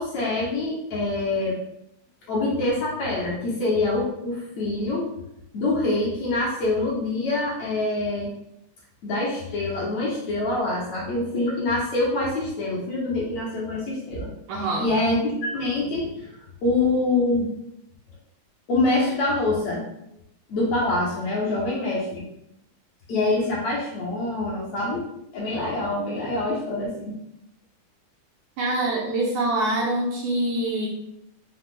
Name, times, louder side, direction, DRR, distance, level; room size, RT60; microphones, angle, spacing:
voice 1, 0.0-1.6 2.3-5.1 5.5-8.3 9.0-14.3 14.6-16.3 16.6-17.5 18.7-19.8 20.5-22.2 23.1-25.0 25.3-27.2, left 2 dB, 65° left, -5 dB, 1.9 m, -25 dB
voice 2, 14.5-14.9 28.6-30.9, right 2 dB, 75° right, -2 dB, 1.9 m, -25 dB
5.7 x 2.4 x 3.7 m, 0.78 s
omnidirectional pair, 3.8 m